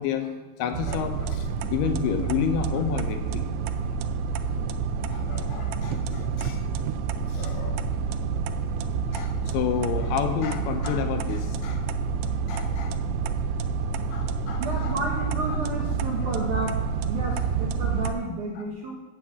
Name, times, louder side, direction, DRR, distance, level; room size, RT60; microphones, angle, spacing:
voice 1, 0.0-3.5 5.1-6.6 7.3-7.8 9.1-12.2 12.5-13.0 14.1-15.3 16.2-16.6 18.6-18.7, left 8 dB, 80° left, 6 dB, 2.6 m, -31 dB
sound 1, 0.7-18.1, right 5 dB, 90° right, 2.8 m, -28 dB
voice 2, 14.6-16.7 17.1-19.0, right 2 dB, 70° right, -1 dB, 1.9 m, -31 dB
8.5 x 7.9 x 7.4 m, 1.3 s
omnidirectional pair, 4.8 m